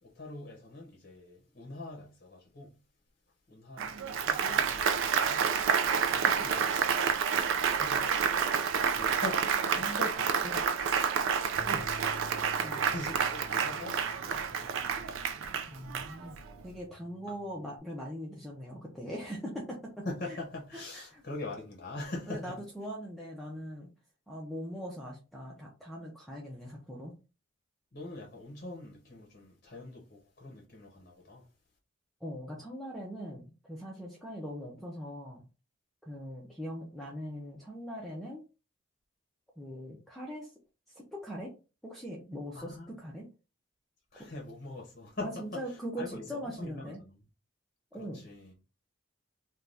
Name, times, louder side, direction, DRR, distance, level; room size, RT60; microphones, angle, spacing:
voice 1, 0.0-2.8 3.5-5.7 6.0-7.1 8.9-10.9 12.7-14.9 17.3-17.4 20.0-22.5 27.9-31.5 42.5-42.9 44.1-47.1 48.1-48.5, left 2 dB, 40° left, 0.7 m, -43 dB
Applause, 3.8-16.5, right 7 dB, 65° right, 0.3 m, -29 dB
Bass guitar, 11.5-17.8, left 2 dB, 35° right, 0.9 m, -51 dB
voice 2, 11.6-12.0 12.6-12.8 15.7-16.4 16.6-20.4 20.7-21.2 22.3-23.9 24.3-27.1 32.2-35.4 36.0-38.4 39.6-40.5 40.9-41.5 41.8-43.2 44.2-44.3 45.2-47.0 47.9-48.3, equal, ahead, 0.4 m, -41 dB
2.6 x 2.2 x 3.3 m
head